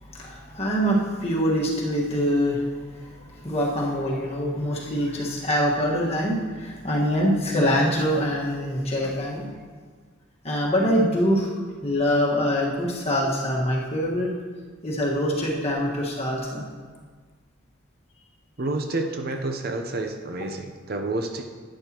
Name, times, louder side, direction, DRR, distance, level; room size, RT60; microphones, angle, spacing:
voice 1, 0.0-9.5 10.4-11.5 11.8-14.3 14.8-16.6, equal, 30° left, -3 dB, 1.6 m, -24 dB
voice 2, 18.6-21.4, right 2 dB, 50° right, 4 dB, 0.7 m, -29 dB
11.5 x 9.9 x 3.0 m, 1.5 s
head